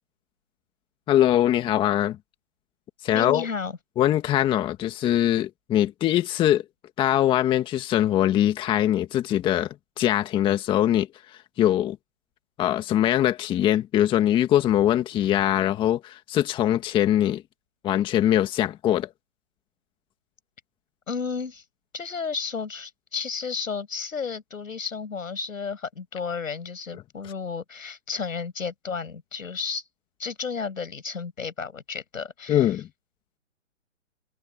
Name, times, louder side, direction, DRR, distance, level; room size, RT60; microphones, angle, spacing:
voice 1, 1.1-2.2 3.0-3.5 4.0-6.6 7.0-11.1 11.6-12.0 12.6-17.4 17.8-19.1 32.5-32.9, left 12 dB, 10° left, 1.7 m, -22 dB
voice 2, 3.1-3.7 21.1-21.6 21.9-29.8 30.2-32.7, left 5 dB, 80° left, 6.5 m, -32 dB
open air
hypercardioid pair, 150°, 39 cm